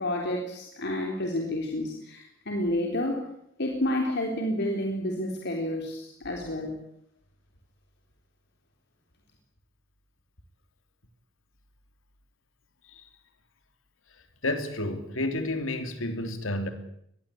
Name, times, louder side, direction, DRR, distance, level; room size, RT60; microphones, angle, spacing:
voice 1, 0.0-3.3 3.6-6.8, left 1 dB, 55° left, 1 dB, 3.7 m, -30 dB
voice 2, 14.4-16.7, left 1 dB, 75° left, 8 dB, 3.2 m, -30 dB
23.5 x 20.5 x 8.6 m, 0.71 s
head